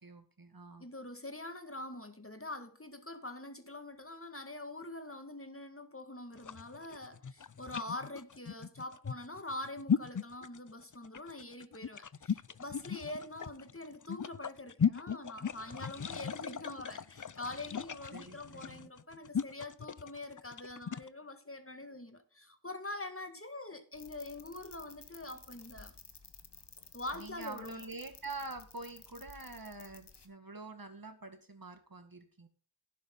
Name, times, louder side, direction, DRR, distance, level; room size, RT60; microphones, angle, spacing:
voice 1, 0.0-0.9 18.1-18.9 27.1-32.5, right 3 dB, 50° right, 2.0 m, -46 dB
voice 2, 0.8-25.9 26.9-27.8, left 2 dB, 30° left, 2.0 m, -44 dB
sound 1, 6.3-21.1, left 7 dB, 45° left, 0.6 m, -37 dB
sound 2, 23.9-30.3, left 4 dB, 65° left, 1.5 m, -55 dB
11.0 x 10.5 x 4.0 m
wide cardioid pair, 45°, 44 cm